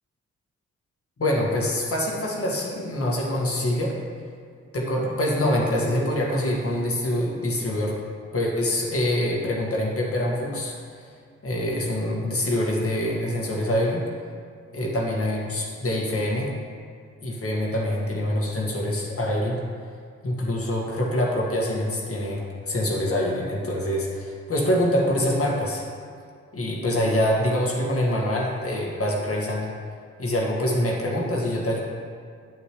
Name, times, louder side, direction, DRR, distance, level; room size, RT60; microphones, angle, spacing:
voice 1, 1.2-3.9 4.7-8.0 8.3-11.1 11.4-14.0 14.7-16.5 17.2-19.6 20.2-25.8 26.5-29.7 30.2-31.8, left 1 dB, 50° left, -2 dB, 2.0 m, -25 dB
8.6 x 8.0 x 3.3 m, 2.2 s
cardioid pair, 55°, 29 cm